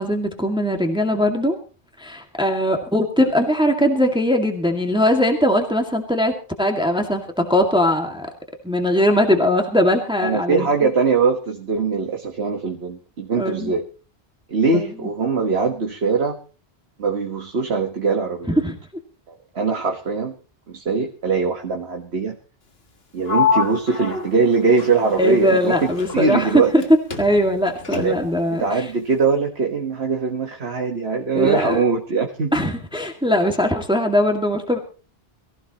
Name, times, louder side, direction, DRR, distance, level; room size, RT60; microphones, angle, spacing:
voice 1, 0.0-1.6 2.0-8.3 8.6-10.7 13.4-13.7 14.7-14.9 18.5-18.8 25.2-26.6 27.2-28.9 31.3-31.8 32.5-34.8, equal, 5° right, 3 dB, 2.1 m, -20 dB
voice 2, 10.2-13.9 14.5-16.4 17.0-18.6 19.3-20.3 20.7-22.4 23.1-26.7 28.0-28.2 28.5-32.7, right 4 dB, 70° right, 2 dB, 1.7 m, -22 dB
Sliding door, 23.3-26.9 27.1-28.4, left 6 dB, 65° left, 1.9 m, -27 dB
23.5 x 15.5 x 3.0 m, 0.36 s
omnidirectional pair, 1.1 m